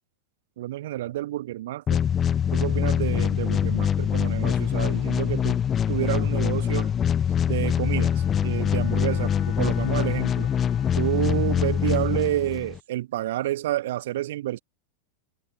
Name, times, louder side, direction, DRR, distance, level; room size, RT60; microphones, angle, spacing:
voice 1, 0.6-2.0 2.5-5.6 5.9-6.9 7.5-8.1 8.4-10.5 11.0-14.6, right 14 dB, 55° right, 1.7 m, -29 dB
sound 1, 1.9-12.8, left 8 dB, 25° left, 0.7 m, -24 dB
Bowed string instrument, 7.7-12.2, left 23 dB, 40° left, 3.1 m, -44 dB
figure-of-eight pair, 90°, 0 cm